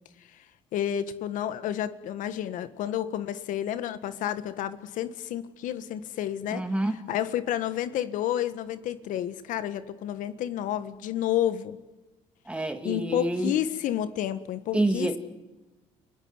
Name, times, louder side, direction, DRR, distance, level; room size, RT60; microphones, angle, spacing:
voice 1, 0.7-6.6 7.1-11.8 12.8-15.1, left 11 dB, 70° left, 12 dB, 1.6 m, -30 dB
voice 2, 6.5-7.0 12.5-13.5 14.7-15.2, right 1 dB, 10° right, 5 dB, 2.4 m, -27 dB
29.5 x 17.5 x 9.7 m, 1.1 s
supercardioid pair, 70°, 14 cm